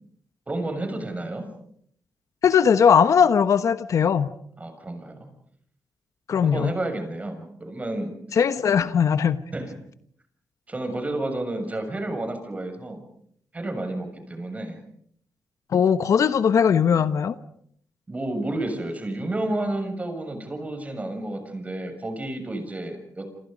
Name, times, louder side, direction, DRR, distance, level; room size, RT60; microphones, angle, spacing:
voice 1, 0.5-1.5 4.6-5.3 6.4-8.4 9.5-9.7 10.7-13.0 13.5-14.8 18.1-23.3, right 1 dB, 25° right, 7 dB, 6.8 m, -31 dB
voice 2, 2.4-4.3 6.3-6.7 8.3-9.4 15.7-17.4, left 7 dB, 65° left, 12 dB, 1.2 m, -19 dB
28.0 x 27.5 x 5.3 m, 0.65 s
cardioid pair, 105°, 6 cm